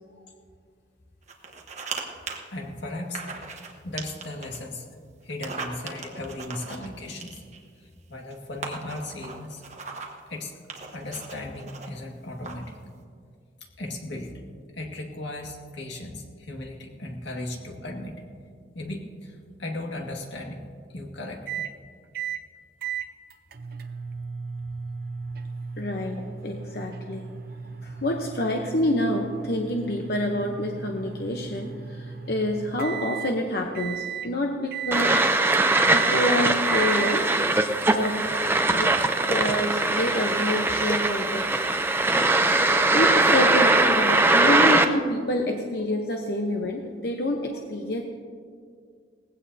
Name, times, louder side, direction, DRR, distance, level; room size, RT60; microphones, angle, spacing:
sound 1, 1.3-2.0 2.3-2.4 3.1-3.7 4.0-4.6 5.3-7.7 8.3-8.4 8.6-10.2 10.7-11.9 12.4-12.7, right 4 dB, 40° right, 1.3 m, -37 dB
voice 1, 2.5-3.2 3.8-4.9 5.2-7.4 7.8-9.6 10.3-10.5 10.9-12.8 13.6-14.3 14.7-18.2 18.7-20.6 20.9-21.6 38.3-38.5, left 2 dB, 75° left, 1 dB, 1.9 m, -36 dB
sound 2, 21.5-21.7 22.1-22.4 22.8-33.3 33.7-34.3 34.7-35.3 35.7-36.2 36.6-37.2, right 7 dB, 55° right, 0.7 m, -35 dB
voice 2, 25.8-27.3 27.8-35.3 35.9-37.4 37.9-38.2 38.7-38.9 39.3-41.6 42.3-48.0, left 1 dB, 55° left, 2 dB, 0.9 m, -28 dB
sound 3, 34.9-44.8, right 2 dB, 10° right, 0.5 m, -21 dB
19.0 x 16.0 x 2.8 m, 2.1 s
head